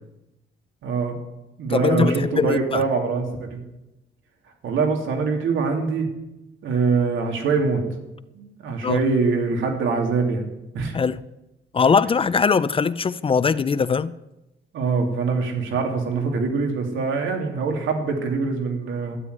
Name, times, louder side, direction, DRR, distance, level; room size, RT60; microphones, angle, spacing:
voice 1, 0.8-1.2 1.6-3.6 4.6-6.1 6.6-7.8 8.3-10.5 10.7-11.0 14.7-19.2, right 4 dB, 85° right, 2.9 m, -23 dB
voice 2, 1.7-2.8 8.8-9.0 10.9-11.2 11.7-14.1, left 5 dB, 30° left, 0.4 m, -21 dB
12.5 x 9.0 x 9.7 m
cardioid pair, 140°, 20 cm